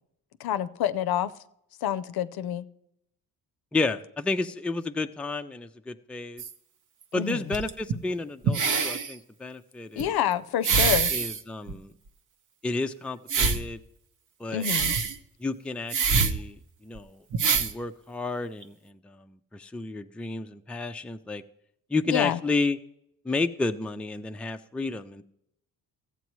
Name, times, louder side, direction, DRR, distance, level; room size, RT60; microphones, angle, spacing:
voice 1, 0.4-1.3 1.8-2.7 7.1-7.5 10.0-11.1 14.5-14.9 22.0-22.4, left 10 dB, 65° left, 12 dB, 0.6 m, -28 dB
voice 2, 3.7-6.4 7.1-10.1 11.1-11.9 12.6-13.8 14.4-14.7 15.4-16.6 16.8-17.2 17.6-19.3 19.5-21.4 21.9-22.8 23.3-25.2, left 3 dB, 5° left, 7 dB, 0.4 m, -31 dB
sound 1, 6.4-6.5 7.5-7.9 8.4-9.1 10.0-10.1 10.6-11.4 11.7-11.8 13.3-13.7 14.6-15.2 15.9-16.4 17.0-17.1 17.3-17.7 18.6-18.7, right 5 dB, 50° right, 0.9 m, -25 dB
14.0 x 8.2 x 3.1 m, 0.76 s
supercardioid pair, 65°, 39 cm